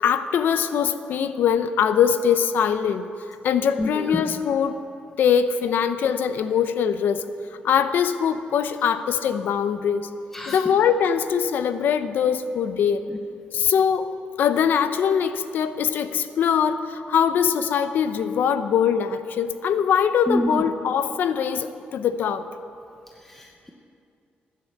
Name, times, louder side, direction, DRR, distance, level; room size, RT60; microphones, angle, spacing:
voice 1, 0.0-3.1 3.4-4.7 5.2-7.2 7.6-10.1 10.5-13.1 13.5-14.1 14.4-22.4, left 8 dB, 70° left, 11 dB, 0.7 m, -22 dB
voice 2, 3.8-4.2 10.3-10.6 13.1-13.2 20.3-20.5 23.2-23.7, left 1 dB, 10° left, 0 dB, 0.9 m, -28 dB
15.5 x 10.0 x 6.8 m, 2.5 s
cardioid pair, 145°, 3 cm